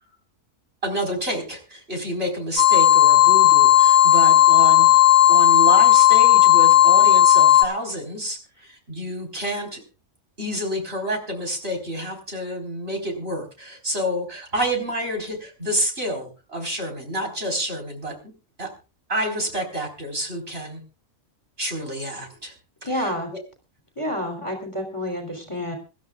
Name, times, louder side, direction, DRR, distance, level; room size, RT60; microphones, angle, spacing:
voice 1, 0.8-4.9 5.3-9.8 10.4-18.3 18.6-18.7 19.1-20.8 21.6-22.5 22.9-23.1, equal, 45° right, 2 dB, 4.9 m, -28 dB
sound 1, 2.6-7.6, left 13 dB, 45° left, 1.5 m, -14 dB
voice 2, 22.8-23.3 24.0-25.8, left 1 dB, 20° left, 3 dB, 3.4 m, -28 dB
25.5 x 13.0 x 2.4 m, 0.32 s
omnidirectional pair, 1.4 m